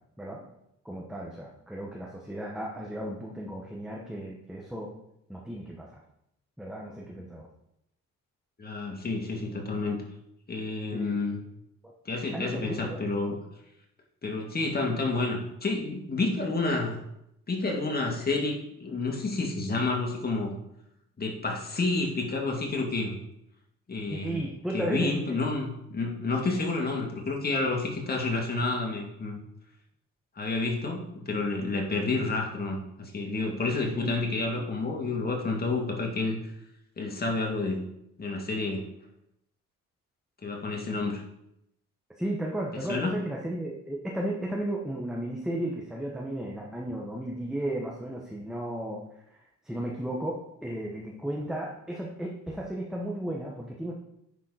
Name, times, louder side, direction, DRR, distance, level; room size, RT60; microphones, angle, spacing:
voice 1, 0.8-4.9 5.3-6.0 6.6-7.5 10.9-11.2 11.8-11.9 12.3-13.0 24.1-25.4 32.1-32.2 33.9-34.1 34.6-34.7 42.2-49.0 49.3-53.9, right 1 dB, ahead, -2 dB, 1.3 m, -34 dB
voice 2, 8.6-10.0 10.5-11.4 12.1-13.4 14.2-17.0 17.5-20.5 21.2-23.1 23.9-24.5 24.7-29.4 30.4-36.4 37.0-37.8 38.2-38.9 40.4-41.2 42.9-43.2, left 3 dB, 30° left, 0 dB, 2.2 m, -29 dB
10.0 x 4.2 x 4.2 m, 0.80 s
cardioid pair, 90°, 30 cm